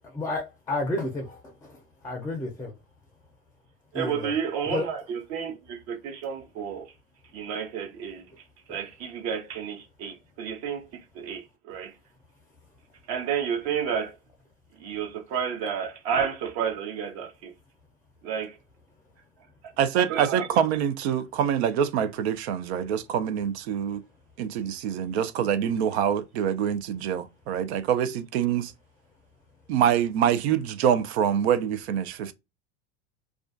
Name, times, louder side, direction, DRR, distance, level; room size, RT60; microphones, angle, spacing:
voice 1, 0.1-2.7 3.9-4.3 4.7-4.8 8.7-8.8, left 2 dB, 10° left, 0.4 m, -31 dB
voice 2, 3.9-6.9 7.3-8.3 8.7-12.0 13.1-14.2 14.8-17.5 18.2-18.6 19.6-20.5, right 7 dB, 55° right, 0.8 m, -31 dB
voice 3, 19.8-24.0 24.4-28.7 29.7-32.3, right 9 dB, 85° right, 0.5 m, -25 dB
2.4 x 2.2 x 2.4 m
supercardioid pair, 115°, 31 cm